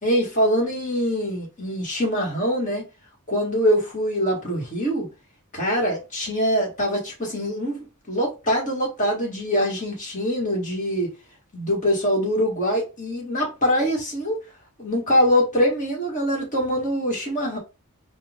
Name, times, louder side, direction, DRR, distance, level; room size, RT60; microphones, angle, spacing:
voice 1, 0.0-2.9 3.3-5.1 5.5-7.8 8.1-11.1 11.5-14.4 14.8-17.6, equal, 35° left, 1.9 m, -23 dB
4.3 x 2.5 x 3.8 m
head